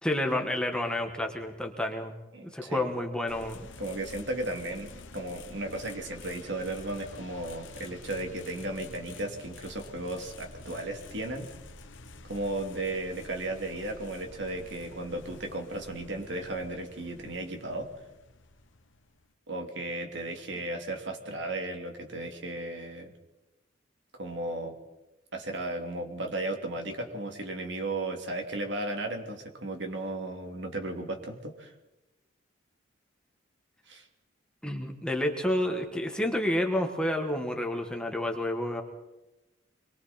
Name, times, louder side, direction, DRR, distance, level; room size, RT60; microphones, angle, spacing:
voice 1, 0.0-2.1 2.4-3.7 34.6-38.8, left 1 dB, 5° left, 3 dB, 1.9 m, -30 dB
voice 2, 2.3-2.9 3.8-11.5 12.2-17.9 19.5-23.1 24.1-24.7 25.3-31.7 33.9-34.1, right 2 dB, 65° right, 4 dB, 3.0 m, -35 dB
sound 1, 3.3-19.3, left 3 dB, 75° left, 1.5 m, -49 dB
26.0 x 22.5 x 4.5 m, 0.99 s
head